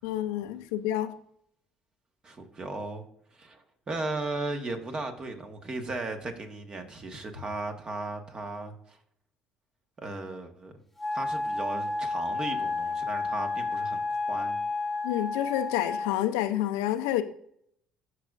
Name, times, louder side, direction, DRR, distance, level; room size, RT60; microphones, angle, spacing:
voice 1, 0.0-1.1 15.0-17.2, left 13 dB, 85° left, 0.5 m, -28 dB
voice 2, 2.2-3.0 3.3-9.0 10.0-10.7 11.1-14.0 14.3-14.6, right 2 dB, 35° right, 1.4 m, -36 dB
Wind instrument woodwind instrument, 11.0-16.2, left 3 dB, 5° left, 1.1 m, -31 dB
12.5 x 4.8 x 2.5 m
hypercardioid pair, 65°, 2 cm